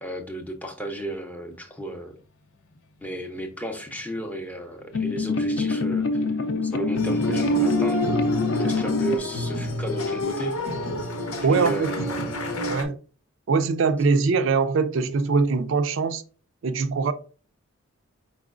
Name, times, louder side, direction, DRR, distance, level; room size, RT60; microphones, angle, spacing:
voice 1, 0.0-2.2 3.0-6.2 6.6-8.0 8.6-10.6 11.5-12.6, right 1 dB, 5° left, 0.5 m, -34 dB
sound 1, 3.0-3.1 3.4-3.5 4.9-9.2, left 3 dB, 60° left, 0.5 m, -25 dB
sound 2, 6.9-12.8, equal, 80° left, 0.8 m, -28 dB
voice 2, 11.4-11.9 12.7-13.0 13.5-16.2 16.6-17.1, right 4 dB, 55° right, 0.3 m, -22 dB
4.8 x 4.2 x 2.4 m
head